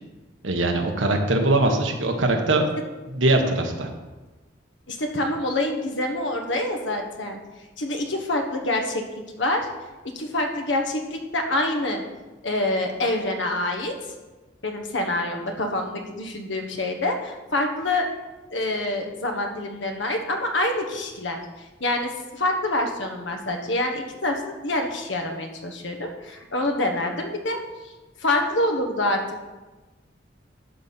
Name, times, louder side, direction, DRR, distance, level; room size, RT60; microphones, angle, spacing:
voice 1, 0.4-2.6 3.1-3.9, right 2 dB, 70° right, 3 dB, 1.4 m, -21 dB
voice 2, 4.9-7.4 7.8-9.0 9.3-9.7 10.1-12.0 12.4-13.9 14.6-18.1 18.5-27.6 28.2-29.2, left 1 dB, 65° left, 4 dB, 1.4 m, -26 dB
11.5 x 4.2 x 7.0 m, 1.2 s
head